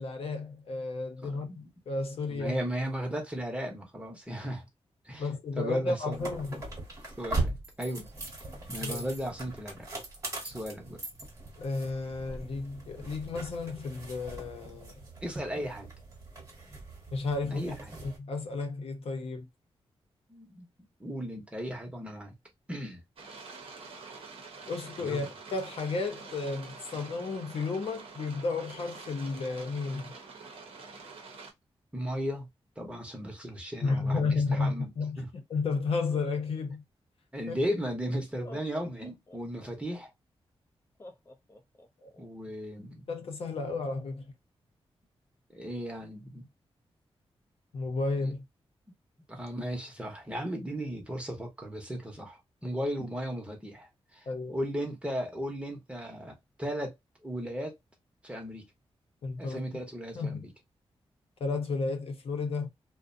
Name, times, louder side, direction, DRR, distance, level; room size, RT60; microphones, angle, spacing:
voice 1, 0.0-2.6 5.2-6.6 8.8-9.0 11.6-14.9 17.1-17.6 18.0-19.4 24.7-30.1 33.8-35.2 35.5-36.8 37.5-37.6 42.0-42.1 43.1-44.2 47.7-48.4 54.3-54.6 59.2-59.6 60.1-60.5 61.4-62.7, left 3 dB, 70° left, 0.7 m, -32 dB
voice 2, 1.2-1.7 2.3-4.7 5.0-5.3 5.6-6.3 7.2-8.1 8.7-9.9 10.4-11.0 15.2-15.9 17.5-17.7 20.3-20.7 21.0-22.4 22.7-23.0 25.0-25.3 31.9-32.5 32.8-34.9 35.2-35.3 37.3-40.1 42.2-43.1 45.5-46.5 48.2-48.3 49.3-56.9 57.2-57.7 58.2-58.7 59.4-60.5, equal, 10° right, 0.8 m, -36 dB
sound 1, 6.1-18.2, right 2 dB, 35° right, 1.1 m, -40 dB
sound 2, 23.2-31.5, right 4 dB, 65° right, 0.7 m, -46 dB
Laughter, 38.3-40.0 41.0-42.2, left 1 dB, 25° left, 0.4 m, -51 dB
2.5 x 2.1 x 2.5 m
wide cardioid pair, 120°, 10 cm